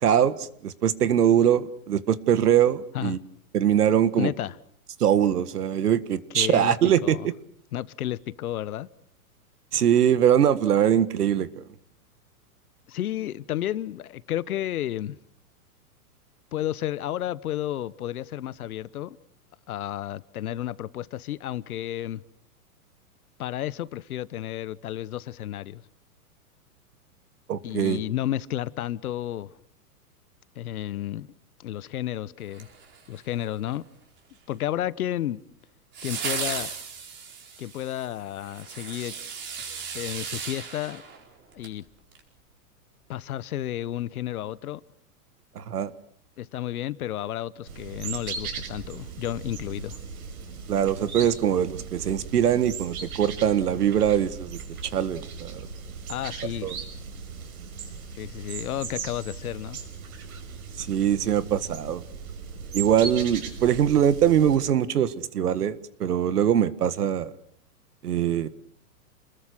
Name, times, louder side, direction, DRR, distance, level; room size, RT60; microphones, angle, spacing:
voice 1, 0.0-3.2 3.5-4.3 5.0-7.2 9.7-11.5 27.5-28.0 45.6-45.9 50.7-55.7 56.6-56.7 60.8-62.0 62.7-67.3 68.0-68.5, right 9 dB, 85° right, 1.8 m, -22 dB
voice 2, 4.2-4.6 6.3-6.7 7.0-7.3 7.7-8.9 12.9-15.2 16.5-19.2 19.7-22.2 23.4-25.8 27.6-29.5 30.5-31.3 31.6-32.7 33.1-33.8 34.5-35.4 36.0-36.7 37.6-39.1 39.7-41.0 41.5-41.8 43.1-44.8 46.4-50.0 56.1-56.8 58.2-59.8, left 12 dB, 70° left, 1.3 m, -32 dB
sound 1, 32.5-33.4 35.9-41.8 42.1-42.2, right 6 dB, 25° right, 4.8 m, -36 dB
sound 2, 47.7-64.6, right 5 dB, 70° right, 6.4 m, -38 dB
29.0 x 21.0 x 6.3 m
hypercardioid pair, 145°, 45 cm